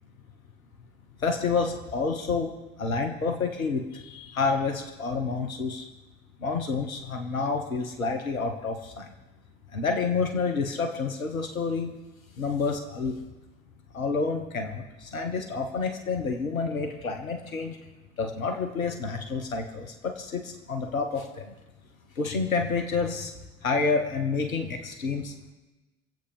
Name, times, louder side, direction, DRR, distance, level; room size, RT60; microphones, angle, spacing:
voice 1, 1.2-2.5 2.8-5.9 6.4-9.1 9.7-12.0 12.4-13.1 13.9-17.8 18.2-21.5 22.1-23.3 23.6-25.3, left 4 dB, 85° left, 4 dB, 1.3 m, -29 dB
24.0 x 8.3 x 5.6 m, 1.1 s
figure-of-eight pair, 55°, 40 cm